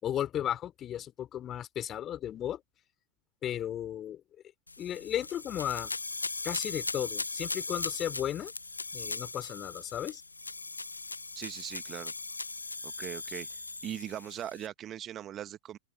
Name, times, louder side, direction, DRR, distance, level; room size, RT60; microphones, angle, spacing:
voice 1, 0.0-2.6 3.4-4.2 4.8-5.9 6.4-8.5 8.9-10.2, left 11 dB, 30° left, 4.3 m, -35 dB
sound 1, 4.7-14.7, left 3 dB, 80° left, 1.4 m, -39 dB
voice 2, 11.3-12.1 12.8-13.5 13.8-15.8, right 11 dB, 30° right, 1.5 m, -40 dB
open air
figure-of-eight pair, 90°, 0 cm